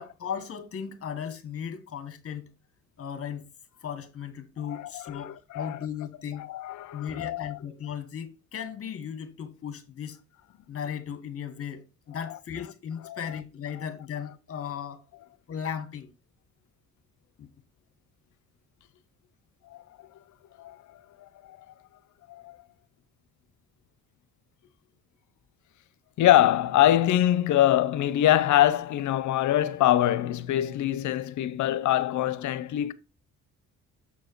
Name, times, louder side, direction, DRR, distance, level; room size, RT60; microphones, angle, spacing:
voice 1, 0.0-2.5 3.0-3.5 3.8-6.5 6.9-10.2 10.7-15.0 15.5-16.1 17.4-17.5, left 8 dB, 50° left, 1.4 m, -36 dB
voice 2, 4.6-5.8 6.4-7.6 13.1-13.2 19.7-19.8 20.6-20.8 22.3-22.6 26.2-32.9, left 13 dB, 70° left, 0.6 m, -24 dB
7.0 x 4.7 x 4.5 m
cardioid pair, 90°, 30 cm